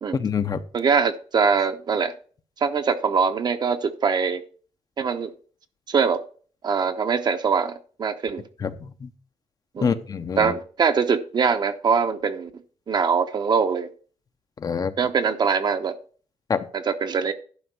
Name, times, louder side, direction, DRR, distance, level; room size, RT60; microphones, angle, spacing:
voice 1, 0.1-0.6 8.6-9.1 9.8-10.5 14.6-14.9 16.5-16.7, left 6 dB, 35° left, 10 dB, 0.7 m, -26 dB
voice 2, 0.7-2.1 2.6-4.4 5.0-5.3 5.9-6.2 6.6-8.4 9.7-10.0 10.4-12.5 12.9-13.9 15.0-16.0 16.7-17.3, right 6 dB, 40° right, 9 dB, 0.9 m, -23 dB
11.5 x 5.2 x 6.1 m, 0.42 s
wide cardioid pair, 160°, 11 cm